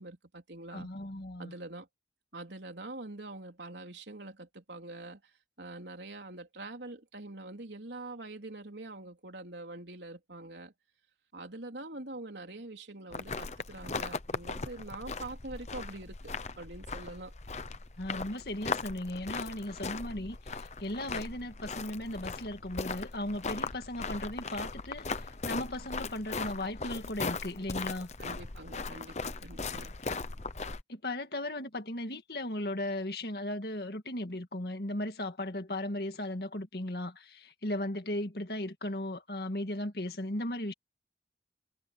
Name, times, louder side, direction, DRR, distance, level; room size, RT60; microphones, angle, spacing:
voice 1, 0.0-0.9 1.4-1.9 2.3-5.3 5.6-10.7 11.3-17.3 28.2-30.0, right 2 dB, 75° right, 3.7 m, -44 dB
voice 2, 0.7-1.5 18.0-25.0 25.5-28.1 30.9-40.7, left 1 dB, 60° left, 2.0 m, -36 dB
sound 1, 13.1-30.8, left 4 dB, 40° left, 0.8 m, -38 dB
head